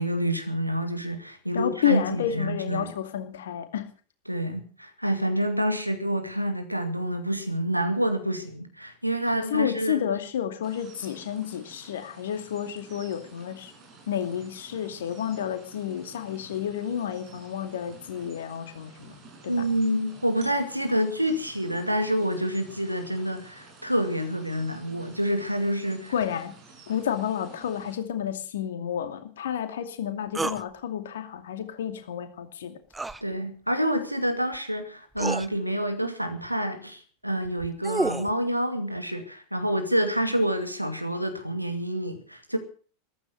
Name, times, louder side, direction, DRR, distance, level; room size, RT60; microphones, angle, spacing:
voice 1, 0.0-2.9 4.3-10.0 19.5-26.1 33.2-42.6, equal, 90° right, 2.4 m, -28 dB
voice 2, 1.5-3.9 9.5-13.7 14.1-19.1 26.1-26.5 26.9-32.8, left 9 dB, 60° left, 2.4 m, -30 dB
sound 1, 10.6-28.0, right 3 dB, 30° right, 6.6 m, -51 dB
sound 2, 30.4-30.6 32.9-33.2 34.5-34.6 35.2-35.5 37.5-38.3, right 3 dB, 10° right, 0.7 m, -29 dB
14.5 x 14.0 x 6.5 m
figure-of-eight pair, 90°, 0 cm